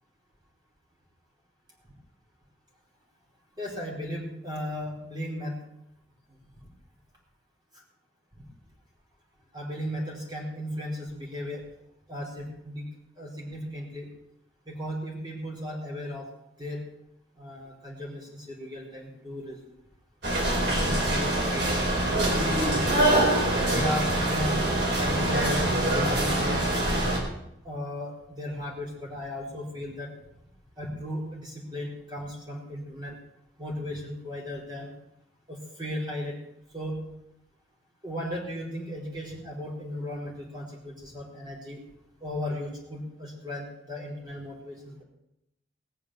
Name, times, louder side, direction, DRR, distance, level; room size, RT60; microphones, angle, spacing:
voice 1, 3.6-5.6 9.5-11.6 12.1-12.9 13.2-14.1 14.7-16.3 16.6-16.8 17.4-19.6 20.6-23.1 23.6-24.6 24.9-26.5 27.6-30.1 30.8-33.2 33.6-34.9 35.5-36.4 36.7-37.0 38.0-41.8 42.2-45.0, left 1 dB, 25° right, -2 dB, 4.7 m, -36 dB
sound 1, 20.2-27.2, right 1 dB, 65° right, 4.5 m, -24 dB
19.0 x 7.1 x 7.8 m, 0.81 s
head